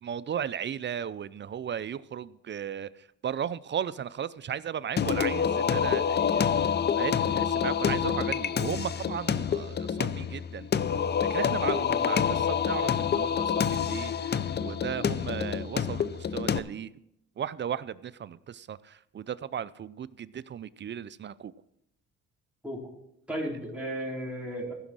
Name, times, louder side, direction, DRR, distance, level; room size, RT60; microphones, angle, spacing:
voice 1, 0.0-2.9 3.2-6.4 7.0-10.7 11.3-16.9 17.4-21.5, right 8 dB, 40° right, 16 dB, 0.5 m, -35 dB
Singing, 5.0-16.6, left 7 dB, 35° left, 0.5 m, -27 dB
voice 2, 23.3-24.7, equal, 5° right, -3 dB, 4.0 m, -34 dB
15.0 x 6.3 x 6.1 m, 0.79 s
cardioid pair, 90°, 30 cm